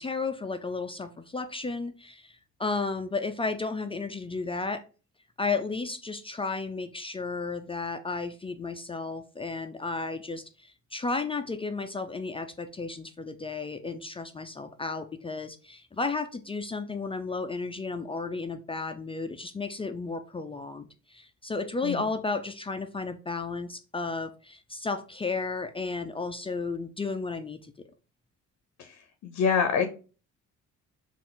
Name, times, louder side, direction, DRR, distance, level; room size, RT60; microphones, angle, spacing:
voice 1, 0.0-4.8 5.4-27.7, left 3 dB, 20° left, 0.3 m, -33 dB
voice 2, 28.8-29.9, left 6 dB, 60° left, 0.6 m, -27 dB
3.9 x 2.5 x 3.7 m
cardioid pair, 90°, 30 cm